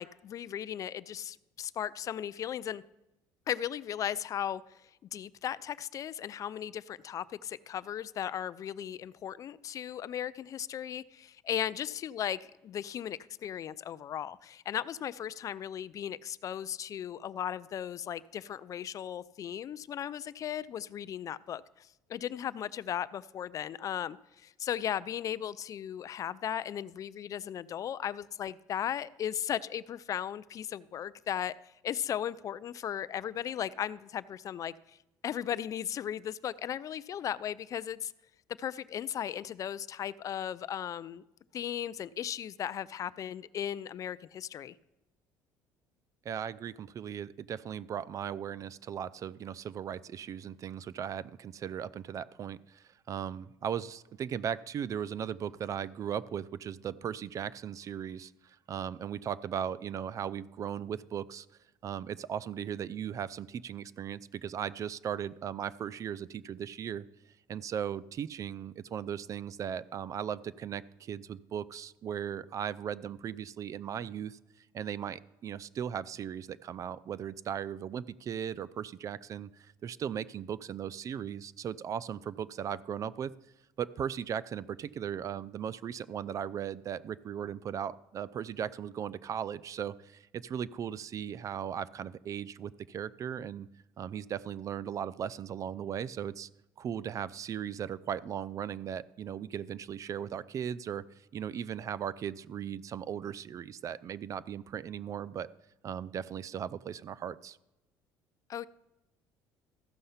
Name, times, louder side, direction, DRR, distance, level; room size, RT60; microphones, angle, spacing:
voice 1, 0.0-2.8 3.5-4.6 5.1-31.5 31.8-34.7 35.2-38.1 38.6-41.2 41.5-44.7 108.5-108.7, left 10 dB, 45° left, 18 dB, 0.3 m, -36 dB
voice 2, 46.2-61.5 61.8-67.1 67.5-74.4 74.7-83.3 83.8-93.7 94.0-96.5 96.8-101.0 101.3-105.5 105.8-107.6, right 8 dB, 40° right, 19 dB, 0.4 m, -37 dB
14.0 x 6.4 x 5.7 m, 0.96 s
supercardioid pair, 100°, 8 cm